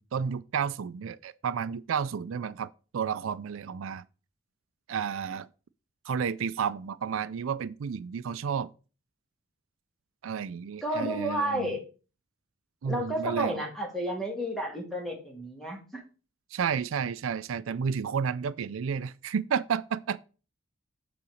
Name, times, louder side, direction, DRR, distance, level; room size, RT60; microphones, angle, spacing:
voice 1, 0.0-4.0 4.9-5.5 6.1-8.7 10.2-11.7 12.8-13.6 16.5-20.2, right 7 dB, 85° right, 0.4 m, -31 dB
voice 2, 10.8-11.8 12.8-16.0, equal, ahead, 2.0 m, -31 dB
8.6 x 3.9 x 6.3 m
head